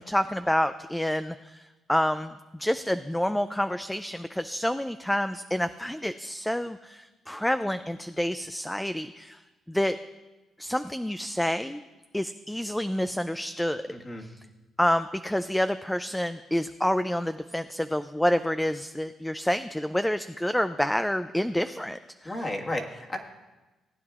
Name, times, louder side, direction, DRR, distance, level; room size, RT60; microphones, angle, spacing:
voice 1, 0.0-1.6 1.9-9.4 9.7-10.0 10.6-11.8 12.1-13.8 14.8-22.3, equal, 5° left, 11 dB, 0.3 m, -28 dB
voice 2, 13.9-14.3 22.2-23.2, left 1 dB, 25° left, 1 dB, 1.6 m, -33 dB
18.0 x 9.4 x 2.4 m, 1.2 s
cardioid pair, 90°, 0 cm